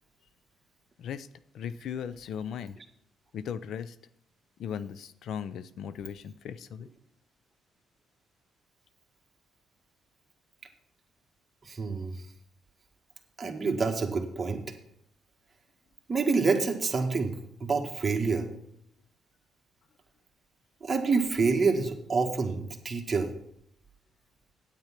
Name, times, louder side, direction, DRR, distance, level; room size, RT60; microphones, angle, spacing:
voice 1, 1.5-2.8 3.3-4.0 4.6-6.9, left 8 dB, 70° left, 15 dB, 0.6 m, -37 dB
voice 2, 11.6-12.1 13.4-14.6 16.1-17.4 17.6-18.5 20.8-23.3, right 4 dB, 30° right, 2 dB, 1.7 m, -27 dB
9.1 x 8.4 x 5.9 m, 0.72 s
cardioid pair, 90°, 0 cm